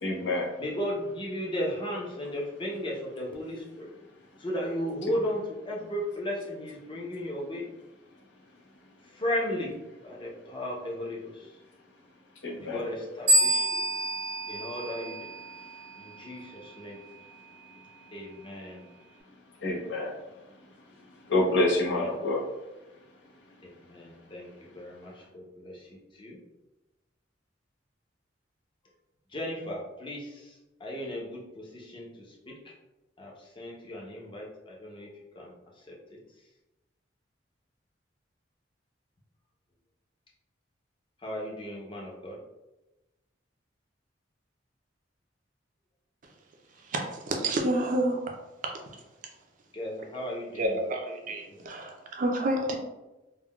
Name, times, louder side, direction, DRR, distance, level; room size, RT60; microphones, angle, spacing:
voice 1, 0.0-0.5 12.4-12.8 19.6-20.1 21.2-22.4, left 2 dB, 75° left, -3 dB, 0.8 m, -27 dB
voice 2, 0.6-3.9 4.4-7.7 9.0-9.7 10.0-11.6 12.6-13.8 14.5-15.3 16.0-17.0 18.1-18.8 21.9-22.1 23.6-26.4 29.3-32.5 33.2-35.1 35.3-36.2 41.2-42.4 49.7-50.8 51.5-51.7, left 1 dB, 25° left, -2 dB, 0.6 m, -35 dB
sound 1, 13.3-15.8, right 1 dB, 80° right, 1.0 m, -27 dB
voice 3, 47.3-48.3 50.6-52.7, right 1 dB, 45° right, 2 dB, 0.5 m, -29 dB
3.6 x 2.2 x 2.3 m, 1.0 s
head